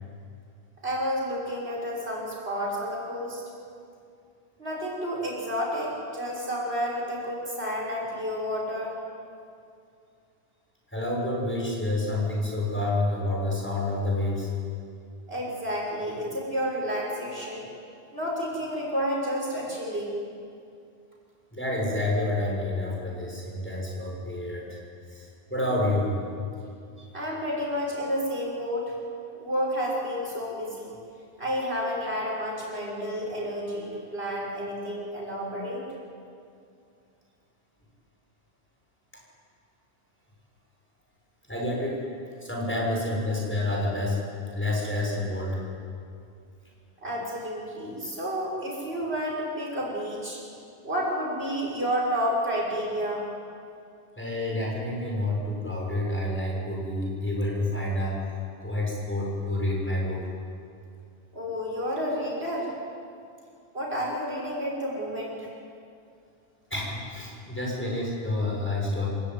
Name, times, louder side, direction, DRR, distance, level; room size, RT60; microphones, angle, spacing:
voice 1, 0.8-3.4 4.6-9.0 15.3-17.6 18.1-20.2 27.1-28.9 29.3-31.0 31.4-35.8 47.0-50.4 50.8-53.3 61.3-62.7 63.7-65.5, equal, 85° right, -3 dB, 6.3 m, -30 dB
voice 2, 10.9-14.5 21.5-24.8 25.1-26.1 27.0-27.1 39.1-39.2 41.5-42.0 42.4-44.2 44.5-45.6 54.2-58.2 58.6-60.3 66.7-69.1, left 1 dB, 10° left, -3 dB, 6.7 m, -28 dB
27.0 x 16.5 x 9.4 m, 2.4 s
omnidirectional pair, 1.0 m